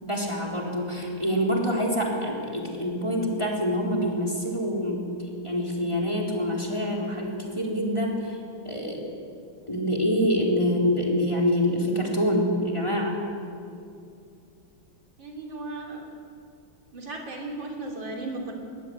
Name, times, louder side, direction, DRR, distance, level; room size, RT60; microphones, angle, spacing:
voice 1, 0.0-5.1 5.4-8.4 8.6-9.1 9.7-13.2, equal, 15° left, -2 dB, 4.0 m, -26 dB
voice 2, 15.2-16.1 16.9-18.5, right 2 dB, 70° right, 0 dB, 4.1 m, -35 dB
22.0 x 20.5 x 9.1 m, 2.5 s
omnidirectional pair, 2.2 m